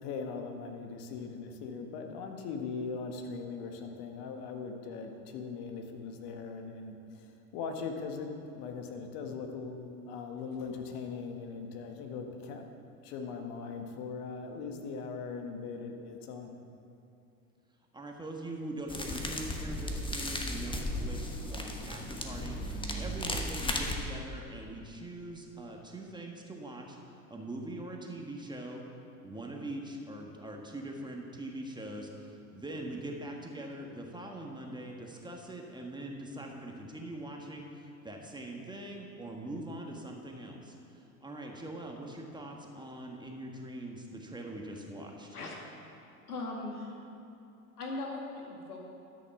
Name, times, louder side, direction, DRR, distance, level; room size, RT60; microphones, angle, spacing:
voice 1, 0.0-7.2 7.5-12.6 13.0-16.5, left 5 dB, 55° left, 4 dB, 1.5 m, -40 dB
voice 2, 17.9-28.8 29.2-45.4, right 1 dB, 10° right, 0 dB, 1.4 m, -42 dB
sound 1, 18.9-23.9, left 1 dB, 10° left, 1.2 m, -35 dB
voice 3, 45.3-45.9 46.3-47.0 47.8-48.8, left 2 dB, 90° left, -1 dB, 2.0 m, -39 dB
12.5 x 6.4 x 5.9 m, 2.7 s
hypercardioid pair, 90°, 44 cm